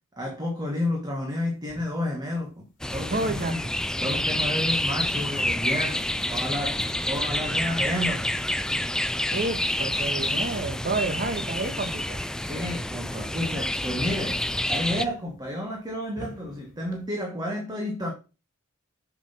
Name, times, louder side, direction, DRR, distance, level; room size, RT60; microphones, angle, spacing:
voice 1, 0.2-3.7 4.0-8.4 12.5-14.4 14.7-18.1, left 1 dB, 20° right, 1.5 m, -31 dB
sound 1, 1.2-17.1, left 1 dB, 40° left, 2.1 m, -48 dB
sound 2, 2.8-15.0, left 1 dB, 5° left, 0.3 m, -28 dB
voice 2, 3.1-3.5 9.3-12.2, right 2 dB, 45° right, 1.6 m, -29 dB
7.2 x 6.1 x 5.8 m
head